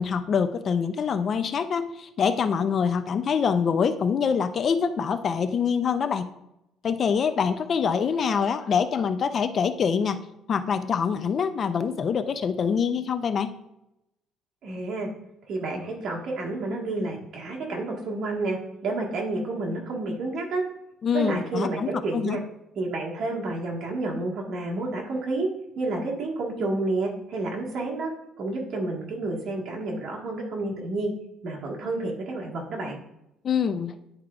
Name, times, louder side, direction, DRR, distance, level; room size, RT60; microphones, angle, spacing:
voice 1, 0.0-6.3 6.8-10.2 10.5-13.5 21.0-22.4 33.4-33.9, left 6 dB, 40° left, 11 dB, 0.4 m, -25 dB
voice 2, 14.6-15.1 15.5-20.6 21.1-22.4 22.7-25.5 25.8-28.1 28.4-31.1 31.4-33.0, right 2 dB, 50° right, -2 dB, 1.6 m, -30 dB
10.0 x 4.8 x 2.4 m, 0.86 s
cardioid pair, 130°, 0 cm